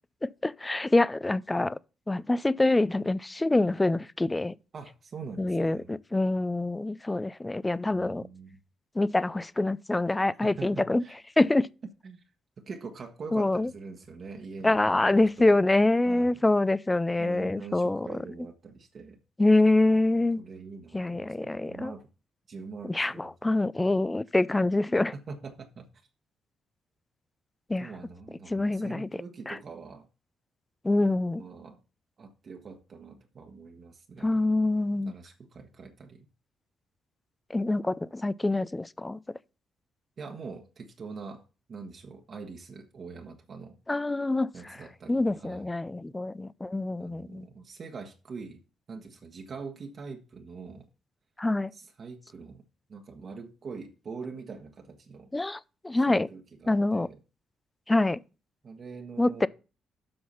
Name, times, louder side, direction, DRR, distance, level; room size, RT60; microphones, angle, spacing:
voice 1, 0.2-1.8 2.1-4.5 5.4-8.2 9.0-11.0 11.4-11.7 13.3-13.7 14.6-18.2 19.4-20.4 20.9-21.9 22.9-25.1 27.7-27.9 28.5-29.1 29.5-29.6 30.8-31.4 34.2-35.1 37.5-39.2 43.9-44.5 45.1-47.5 51.4-51.7 55.3-56.3 56.7-57.1 57.9-58.2 59.2-59.5, left 2 dB, 15° left, 0.4 m, -25 dB
voice 2, 4.7-5.9 7.9-8.6 10.4-11.2 12.0-12.2 12.6-15.6 16.0-16.4 17.2-19.2 20.2-22.1 22.5-23.9 25.1-25.9 27.8-30.1 31.3-31.8 32.2-34.4 35.1-36.3 40.2-41.4 41.7-43.8 44.5-45.7 47.0-48.6 48.9-50.9 51.7-52.6 52.9-55.3 56.1-57.2 58.6-59.5, right 4 dB, 50° right, 1.2 m, -43 dB
7.8 x 5.5 x 5.5 m
cardioid pair, 90°, 0 cm